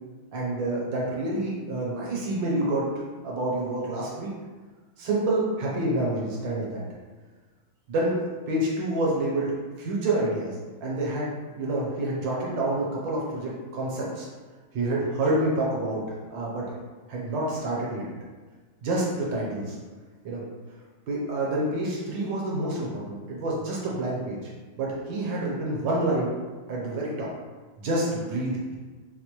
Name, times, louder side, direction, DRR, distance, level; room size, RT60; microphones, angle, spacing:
voice 1, 0.3-2.9 3.2-4.3 5.0-6.8 7.9-14.3 14.7-16.0 16.3-16.7 17.1-18.1 18.8-19.8 20.2-20.4 21.1-24.5 24.8-26.3 26.7-27.3 27.8-28.8, right 1 dB, 70° right, -4 dB, 1.4 m, -28 dB
4.6 x 2.1 x 2.9 m, 1.4 s
omnidirectional pair, 2.2 m